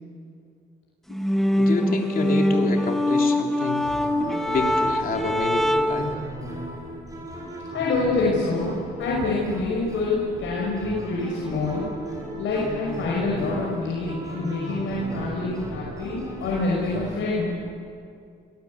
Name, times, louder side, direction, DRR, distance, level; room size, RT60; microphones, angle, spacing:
sound 1, 1.1-6.1, left 1 dB, ahead, 1.5 m, -23 dB
voice 1, 1.6-3.9 4.5-6.2, left 3 dB, 45° left, 1 dB, 3.3 m, -28 dB
sound 2, 3.8-17.7, right 1 dB, 15° right, 7.1 m, -36 dB
voice 2, 7.7-11.9 12.4-17.5, left 3 dB, 75° left, -4 dB, 5.7 m, -26 dB
26.5 x 19.0 x 8.6 m, 2.4 s
cardioid pair, 90°, 20 cm